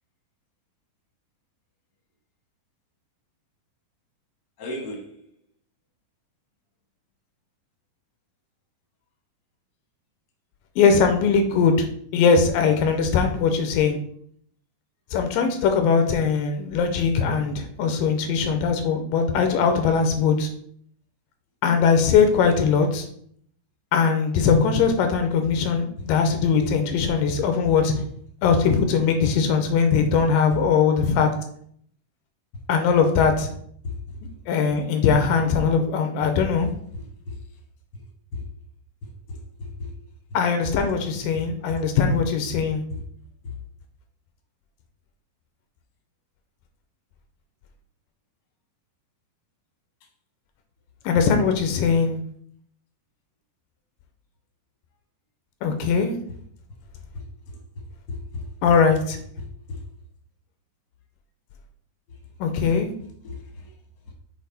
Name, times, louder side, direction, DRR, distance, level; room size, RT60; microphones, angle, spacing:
voice 1, 4.6-5.2 33.8-33.9 37.3-37.4 38.3-38.4 39.3-39.9 58.1-58.4 63.2-63.7, left 2 dB, 50° left, 1 dB, 1.3 m, -34 dB
voice 2, 10.8-11.9 12.1-14.0 15.1-20.5 21.6-23.1 23.9-27.9 28.4-31.3 32.7-33.5 34.5-36.7 40.3-42.8 51.0-52.2 55.6-56.2 58.6-59.2 62.4-62.9, left 5 dB, 85° left, 6 dB, 2.3 m, -20 dB
6.5 x 4.4 x 4.1 m, 0.64 s
omnidirectional pair, 4.1 m